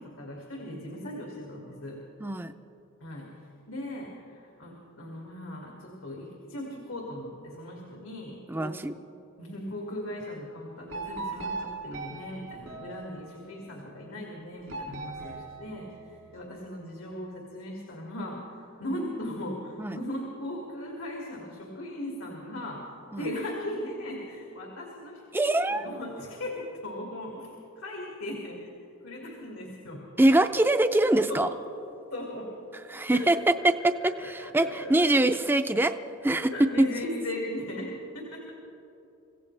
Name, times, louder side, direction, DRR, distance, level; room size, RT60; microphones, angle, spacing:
voice 1, 0.0-2.0 3.0-8.8 9.4-22.8 23.2-28.7 29.0-30.0 31.3-31.6 32.1-32.5 33.1-33.5 33.8-35.1 36.5-38.5, left 1 dB, 90° left, -2 dB, 2.3 m, -38 dB
voice 2, 2.2-2.5 8.5-8.9 19.8-20.0 23.1-23.2 25.3-25.8 30.2-31.5 32.9-35.9 36.2-36.5 36.8-36.9, right 1 dB, 10° right, 9 dB, 0.4 m, -23 dB
sound 1, 10.9-13.6 14.7-16.4, right 3 dB, 85° right, 2.9 m, -39 dB
25.5 x 16.0 x 3.3 m, 3.0 s
head